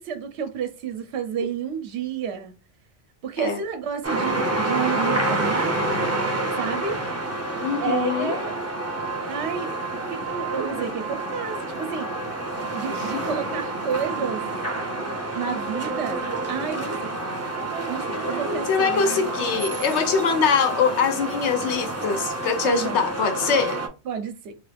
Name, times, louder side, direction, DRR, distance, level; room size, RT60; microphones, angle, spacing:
voice 1, 0.0-2.5 3.2-5.8 6.6-7.0 7.8-8.6 9.3-9.8 10.1-12.1 12.7-14.4 15.3-17.2 17.9-19.3 22.6-23.0 24.1-24.5, right 7 dB, 75° right, 0.9 m, -30 dB
sound 1, 4.0-23.9, right 2 dB, 20° right, 0.5 m, -28 dB
voice 2, 7.6-8.4 12.9-13.6 18.7-23.8, left 6 dB, 80° left, 0.9 m, -23 dB
3.0 x 2.3 x 3.2 m
omnidirectional pair, 1.2 m